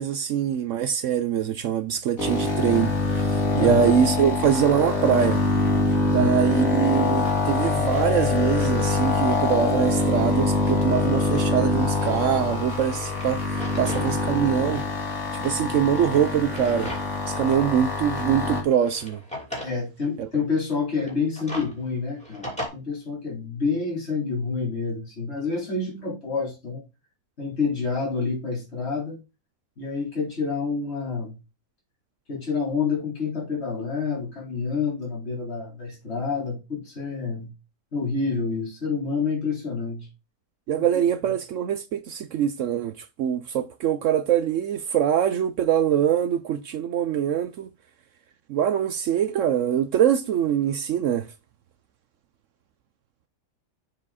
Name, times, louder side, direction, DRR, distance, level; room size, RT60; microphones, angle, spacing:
voice 1, 0.0-5.4 6.1-14.8 15.3-16.9 17.3-19.2 20.2-20.3 40.7-47.7 48.5-51.2, right 9 dB, 70° right, 0.7 m, -23 dB
sound 1, 2.2-18.6, left 3 dB, 55° left, 2.3 m, -24 dB
voice 2, 3.5-3.8 6.1-6.3 19.6-26.8 27.4-29.2 29.8-31.4 32.3-37.5 37.9-40.1, left 4 dB, 40° left, 3.8 m, -28 dB
Drawer open or close, 12.7-14.1 14.5-14.6 15.6-17.3 17.7-17.8 18.6-19.8 21.0-22.7, left 1 dB, 5° left, 2.7 m, -38 dB
7.1 x 4.9 x 4.1 m
omnidirectional pair, 1.8 m